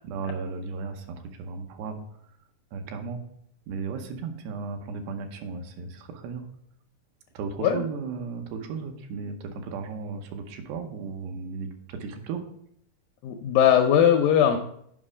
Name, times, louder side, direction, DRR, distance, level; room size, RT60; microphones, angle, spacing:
voice 1, 0.0-2.0 2.7-3.2 3.7-6.5 7.3-12.4, right 5 dB, 85° right, 4 dB, 3.1 m, -35 dB
voice 2, 13.2-14.6, left 9 dB, 85° left, 4 dB, 2.0 m, -19 dB
7.8 x 5.4 x 4.9 m, 0.70 s
omnidirectional pair, 4.7 m